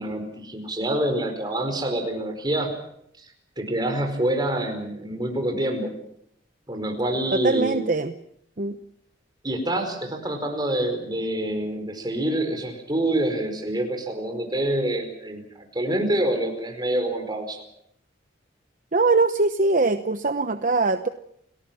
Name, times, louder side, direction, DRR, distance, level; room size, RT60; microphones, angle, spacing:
voice 1, 0.0-2.7 3.2-3.3 3.6-6.0 6.7-7.9 9.4-15.4 15.7-17.6, right 1 dB, 20° right, 5 dB, 4.9 m, -26 dB
voice 2, 7.3-8.1 8.6-8.8 18.9-21.1, right 3 dB, 45° right, 9 dB, 0.9 m, -22 dB
29.5 x 19.0 x 6.1 m, 0.72 s
head